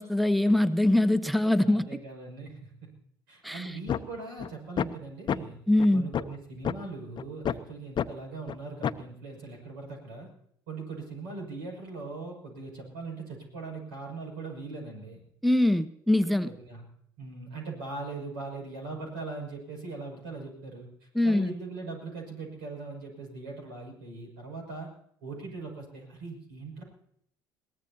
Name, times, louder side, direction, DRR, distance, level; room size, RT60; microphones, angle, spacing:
voice 1, 0.0-2.0 3.4-3.8 5.7-6.1 15.4-16.5 21.1-21.5, left 1 dB, ahead, 14 dB, 0.8 m, -23 dB
voice 2, 1.6-2.9 3.3-5.6 5.9-10.3 10.7-15.2 16.4-16.8 17.2-24.9 25.2-26.8, right 3 dB, 80° right, 0 dB, 6.7 m, -40 dB
sound 1, 3.9-4.0 4.4-4.5 4.8-4.9 5.3-5.4 5.8-5.9 6.1-6.3 6.6-6.8 7.2-7.5 8.0-8.1 8.5-8.6 8.8-9.0, left 9 dB, 45° left, 0.7 m, -28 dB
22.0 x 18.0 x 2.9 m, 0.69 s
hypercardioid pair, 60°, 11 cm